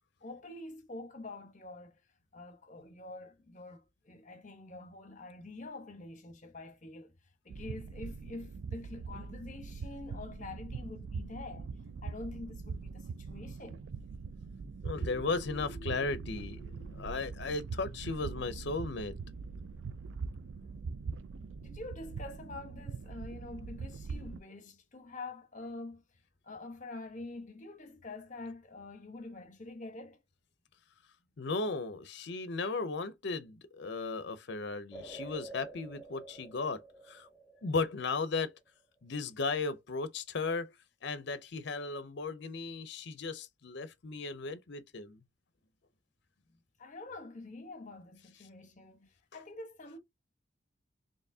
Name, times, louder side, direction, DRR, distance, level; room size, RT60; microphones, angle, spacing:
voice 1, 0.2-2.0 2.3-7.1 7.4-11.7 12.0-13.9 21.6-26.0 26.4-30.2 46.8-50.0, left 2 dB, 40° left, 1.0 m, -46 dB
sound 1, 7.5-24.4, right 4 dB, 70° right, 0.4 m, -42 dB
voice 2, 14.8-19.1 31.4-36.8 37.1-37.3 37.6-38.5 39.0-40.7 41.0-45.2, left 3 dB, 60° left, 0.6 m, -36 dB
sound 2, 34.9-38.5, right 3 dB, 5° left, 0.7 m, -49 dB
4.4 x 3.0 x 2.7 m
head